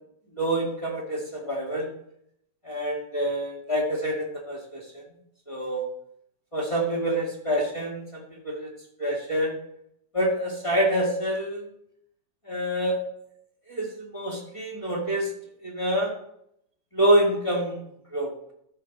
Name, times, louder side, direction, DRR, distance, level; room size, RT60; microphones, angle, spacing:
voice 1, 0.4-1.9 2.6-5.0 5.5-5.8 6.5-8.7 9.0-9.6 10.1-11.7 12.5-13.0 13.7-15.3 15.6-16.1 16.9-17.8 18.1-18.3, right 1 dB, 15° left, -2 dB, 2.2 m, -26 dB
12.5 x 4.6 x 6.0 m, 0.76 s
omnidirectional pair, 2.1 m